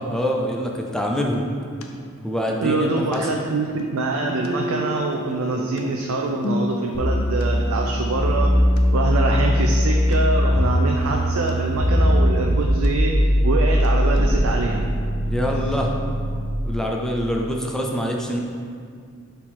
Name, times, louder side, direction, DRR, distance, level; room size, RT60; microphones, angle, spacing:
voice 1, 0.0-1.4 2.2-3.2 15.2-15.9 16.7-18.4, equal, 5° left, 0 dB, 0.4 m, -25 dB
sound 1, 1.1-1.5 1.8-1.9 2.1-4.5 4.8-7.1 7.4-7.5 7.9-8.0 8.4-8.5 8.8-8.9 9.1-10.2 10.6-10.7 11.0-11.5 11.9-12.9 13.2-13.9 14.2-14.5 14.8-14.9 15.6-15.7, left 2 dB, 85° left, 0.5 m, -34 dB
voice 2, 2.6-8.5 8.9-13.2 13.4-14.9, right 3 dB, 75° right, 1 dB, 0.4 m, -25 dB
Guitar, 4.2-11.9, right 1 dB, 30° right, 0.7 m, -37 dB
sound 2, 6.9-16.5, equal, 15° right, 1.3 m, -20 dB
6.3 x 3.8 x 4.2 m, 2.2 s
head